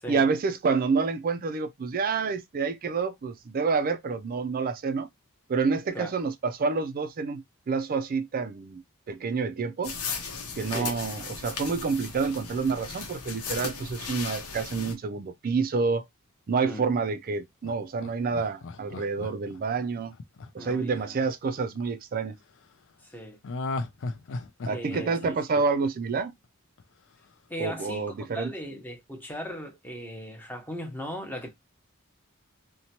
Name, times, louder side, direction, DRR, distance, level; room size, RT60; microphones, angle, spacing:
voice 1, 0.1-5.1 5.5-8.8 9.1-9.9 10.6-16.0 16.5-20.1 20.5-22.3 24.7-26.3 27.6-28.5, right 4 dB, 40° right, 0.4 m, -28 dB
sound 1, 9.8-14.9, left 5 dB, 90° left, 0.7 m, -36 dB
voice 2, 10.7-11.0 16.6-16.9 20.6-21.2 23.0-23.4 24.7-25.4 27.5-31.5, equal, 10° left, 0.8 m, -38 dB
Laughter, 17.6-21.9 23.4-26.5 26.8-26.9, left 3 dB, 60° left, 0.4 m, -37 dB
2.8 x 2.1 x 2.8 m
head